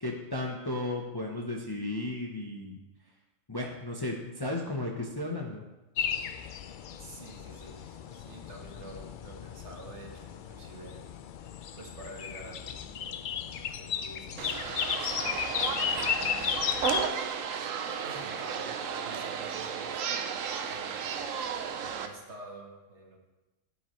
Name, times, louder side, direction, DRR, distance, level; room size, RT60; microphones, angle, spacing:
voice 1, 0.0-2.8 3.5-5.6, left 2 dB, 20° left, 0 dB, 0.8 m, -34 dB
sound 1, 6.0-17.1, left 8 dB, 70° left, 0.4 m, -35 dB
voice 2, 7.0-11.0 11.8-15.3 15.6-16.8 18.0-21.4 21.8-23.2, right 2 dB, 60° right, 0 dB, 1.7 m, -49 dB
sound 2, 14.4-22.1, right 7 dB, 80° right, 1.1 m, -34 dB
10.0 x 8.2 x 3.1 m, 1.1 s
omnidirectional pair, 1.3 m